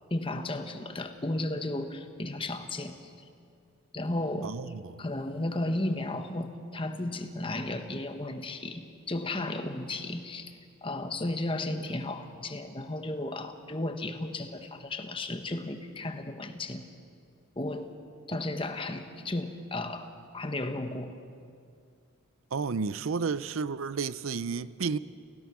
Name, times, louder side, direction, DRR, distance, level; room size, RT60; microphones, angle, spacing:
voice 1, 0.1-3.0 3.9-4.5 5.0-10.5 10.8-16.8 17.6-17.9 18.3-20.1 20.3-21.1, left 2 dB, 25° left, 7 dB, 1.1 m, -34 dB
voice 2, 4.4-5.0 22.5-25.0, right 5 dB, 75° right, 16 dB, 0.5 m, -32 dB
30.0 x 16.5 x 6.1 m, 2.3 s
head